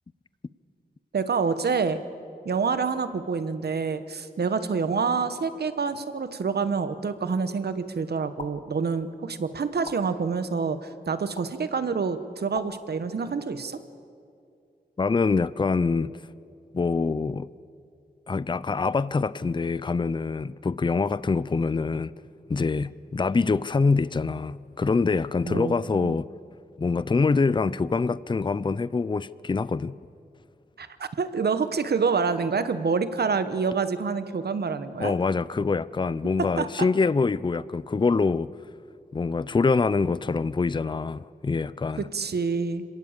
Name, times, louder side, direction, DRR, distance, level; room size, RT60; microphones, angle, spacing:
voice 1, 1.1-2.0 2.4-13.8 25.4-26.2 30.8-35.1 36.6-36.9 42.0-42.9, right 5 dB, 80° right, 1.1 m, -27 dB
sound 1, 8.4-8.5 9.8-10.0 11.4-11.5 12.5-12.7, left 3 dB, 55° left, 1.5 m, -38 dB
voice 2, 15.0-16.1 16.7-17.5 18.3-22.1 22.5-26.3 26.8-30.0 35.0-38.5 39.1-42.1, left 4 dB, 30° left, 0.5 m, -25 dB
26.5 x 17.5 x 7.3 m
wide cardioid pair, 75°, 16 cm